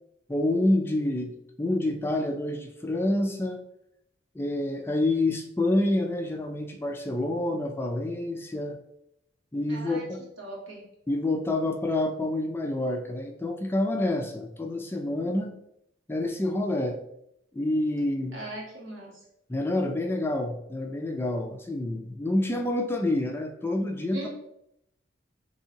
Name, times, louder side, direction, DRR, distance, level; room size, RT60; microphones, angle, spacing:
voice 1, 0.3-1.3 1.6-3.6 4.3-8.8 9.5-10.2 11.1-15.5 16.1-17.0 17.5-18.4 19.5-24.3, left 1 dB, 10° left, 4 dB, 0.3 m, -28 dB
voice 2, 9.7-10.1 10.4-10.8 18.3-19.2 24.1-24.3, right 2 dB, 90° right, -3 dB, 1.6 m, -39 dB
5.4 x 3.4 x 2.8 m, 0.78 s
head